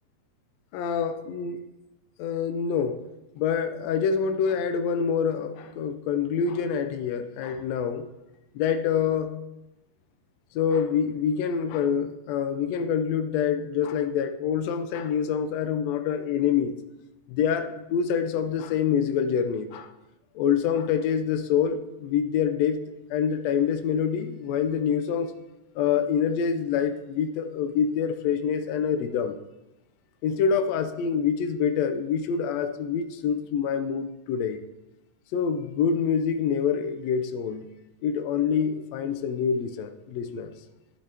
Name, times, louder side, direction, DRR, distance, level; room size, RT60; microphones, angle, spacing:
voice 1, 0.7-1.6 2.2-3.0 3.3-8.1 8.5-9.3 10.5-16.8 17.3-19.9 20.3-22.8 23.1-25.3 25.7-29.3 30.2-34.6 35.3-37.7 38.0-40.5, left 7 dB, 80° left, 8 dB, 1.5 m, -26 dB
12.0 x 11.5 x 3.5 m, 0.95 s
omnidirectional pair, 4.1 m